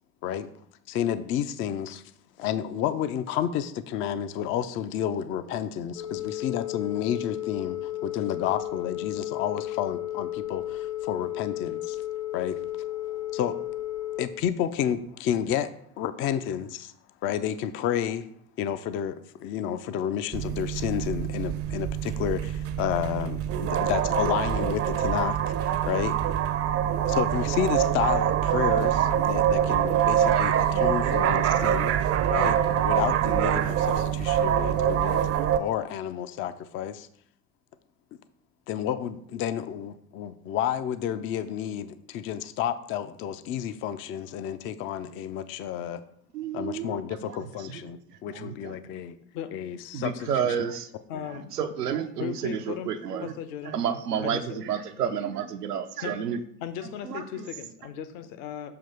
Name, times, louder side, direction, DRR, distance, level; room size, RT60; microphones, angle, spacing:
voice 1, 0.9-2.0 2.4-12.0 12.3-12.6 13.1-13.6 14.2-15.7 16.0-16.9 17.2-18.3 18.6-26.1 27.0-31.9 32.3-35.2 35.6-37.1 38.7-46.0 46.5-49.2 49.5-50.6 51.1-51.2, left 9 dB, 30° left, 0.4 m, -31 dB
Telephone, 5.9-14.3, left 14 dB, 85° left, 2.2 m, -33 dB
sound 1, 20.3-35.6, right 10 dB, 35° right, 0.5 m, -25 dB
voice 2, 46.3-47.8 48.3-48.8 49.9-50.9 51.2-53.3 53.7-56.4 57.1-57.2, right 8 dB, 90° right, 0.6 m, -31 dB
voice 3, 51.1-51.5 52.2-52.9 53.2-53.8 54.2-54.6 56.0-56.2 56.6-58.7, left 9 dB, 60° left, 0.9 m, -36 dB
6.8 x 2.9 x 5.5 m
hypercardioid pair, 80°, 46 cm